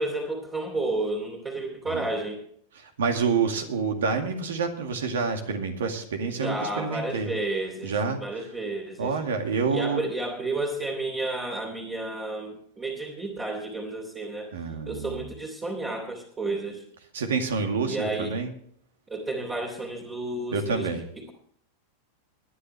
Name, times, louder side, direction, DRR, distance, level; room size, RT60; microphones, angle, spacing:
voice 1, 0.0-2.4 6.4-8.0 8.2-9.1 9.7-14.5 14.9-16.8 17.9-18.3 19.1-20.9 21.1-21.3, right 2 dB, 20° right, -1 dB, 2.8 m, -31 dB
voice 2, 2.8-7.3 7.8-8.2 9.0-10.0 14.5-15.3 17.1-18.5 20.5-21.0, right 5 dB, 75° right, 5 dB, 2.2 m, -28 dB
21.0 x 9.9 x 3.3 m, 0.62 s
hypercardioid pair, 95°, 0 cm